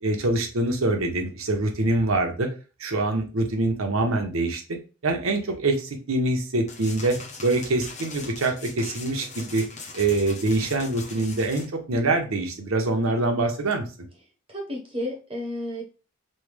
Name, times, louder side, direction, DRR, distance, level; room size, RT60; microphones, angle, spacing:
voice 1, 0.0-2.5 2.8-4.8 5.0-9.6 9.9-13.8, right 2 dB, 70° right, 4 dB, 0.7 m, -25 dB
sound 1, 6.7-11.7, left 4 dB, 30° left, 0.5 m, -41 dB
voice 2, 14.5-15.8, left 1 dB, 25° right, -1 dB, 0.7 m, -32 dB
3.2 x 2.2 x 3.2 m, 0.34 s
head